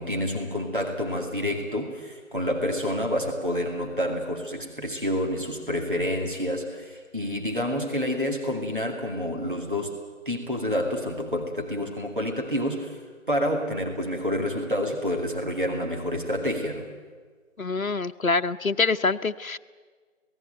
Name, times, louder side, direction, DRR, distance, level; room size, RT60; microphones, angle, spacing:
voice 1, 0.0-10.0 10.3-13.0 13.3-16.9, equal, 40° right, 1 dB, 2.4 m, -28 dB
voice 2, 17.6-19.6, left 3 dB, 85° left, 8 dB, 0.9 m, -25 dB
27.0 x 18.0 x 9.2 m, 1.6 s
figure-of-eight pair, 180°, 40 cm